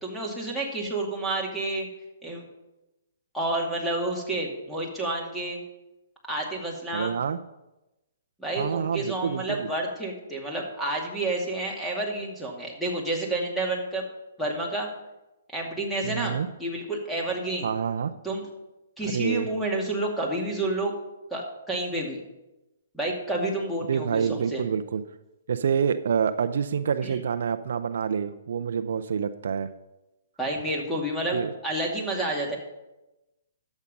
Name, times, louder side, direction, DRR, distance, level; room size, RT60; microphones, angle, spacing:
voice 1, 0.0-1.9 2.2-2.4 3.3-5.6 6.3-7.1 8.4-14.0 14.4-14.9 15.5-17.7 18.2-18.4 19.0-20.9 21.3-22.2 22.9-24.6 27.0-27.2 30.4-32.6, right 2 dB, ahead, -2 dB, 2.3 m, -30 dB
voice 2, 6.9-7.4 8.6-9.7 16.0-16.5 17.6-18.1 19.0-19.5 23.9-25.0 25.5-29.7 31.3-31.5, right 7 dB, 65° right, 10 dB, 0.5 m, -27 dB
12.0 x 7.3 x 5.4 m, 0.97 s
hypercardioid pair, 140°, 0 cm